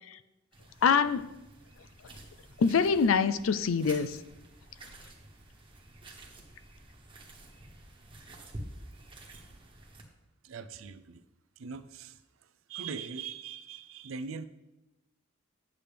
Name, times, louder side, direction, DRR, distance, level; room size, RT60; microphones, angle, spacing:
sound 1, 0.5-10.0, right 1 dB, 25° right, 1.2 m, -50 dB
voice 1, 0.8-1.3 2.6-4.2, left 6 dB, 80° left, 15 dB, 0.4 m, -24 dB
voice 2, 10.4-11.2 11.6-12.2 12.7-14.4, right 5 dB, 80° right, 12 dB, 0.5 m, -41 dB
8.3 x 7.4 x 3.4 m, 0.97 s
head